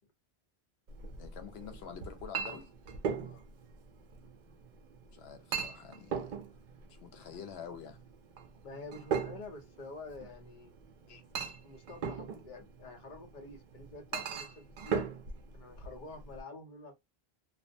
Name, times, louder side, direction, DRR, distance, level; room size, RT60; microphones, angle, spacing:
Chink clink, 0.9-16.4, right 6 dB, 60° right, 0.6 m, -40 dB
voice 1, 1.2-2.7 5.1-6.4 6.9-8.0 11.1-11.2, left 7 dB, 80° left, 0.9 m, -47 dB
voice 2, 8.6-10.7 11.6-15.0 15.5-16.9, left 3 dB, 55° left, 0.9 m, -48 dB
2.4 x 2.0 x 2.6 m
omnidirectional pair, 1.0 m